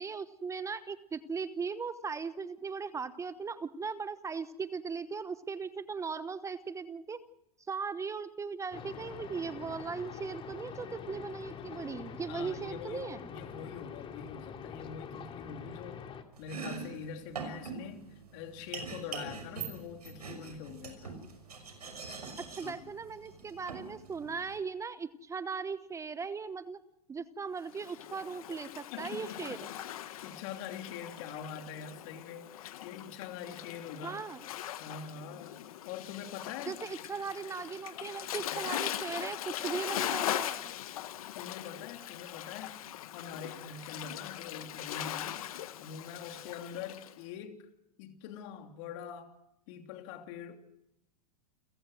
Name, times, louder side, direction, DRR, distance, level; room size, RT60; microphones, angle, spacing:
voice 1, 0.0-7.2 7.7-13.2 22.5-26.8 27.1-29.6 34.0-34.4 36.7-40.7, right 5 dB, 15° right, 1.0 m, -38 dB
sound 1, 8.7-16.2, left 7 dB, 25° left, 2.7 m, -45 dB
voice 2, 12.3-16.0 16.4-21.2 22.6-22.9 28.9-29.8 30.1-34.2 34.8-36.8 41.3-42.8 43.1-45.5 45.8-47.7 48.0-49.3 49.7-50.6, left 7 dB, 50° left, 3.1 m, -44 dB
Domestic sounds home sounds, 16.3-24.6, right 4 dB, 85° right, 6.1 m, -43 dB
Waves surf, 27.7-47.1, left 12 dB, 65° left, 1.4 m, -40 dB
29.5 x 16.0 x 6.2 m
hypercardioid pair, 105°, 19 cm